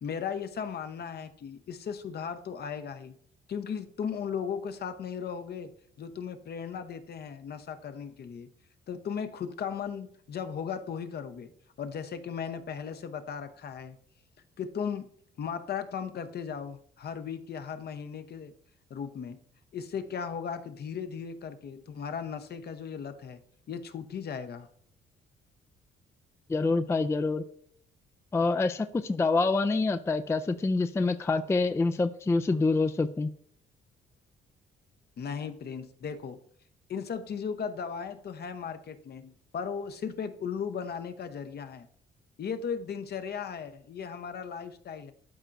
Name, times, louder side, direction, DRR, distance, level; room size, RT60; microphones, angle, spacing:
voice 1, 0.0-3.2 3.5-5.7 6.0-8.5 8.9-11.5 11.8-14.0 14.6-15.1 15.4-18.5 18.9-19.4 19.7-23.4 23.7-24.7 35.2-36.4 36.9-41.9 42.4-45.1, left 7 dB, 55° left, 9 dB, 0.8 m, -36 dB
voice 2, 26.5-27.4 28.3-33.3, left 3 dB, 15° left, 10 dB, 0.3 m, -26 dB
12.5 x 4.5 x 2.6 m, 0.63 s
cardioid pair, 90°, 20 cm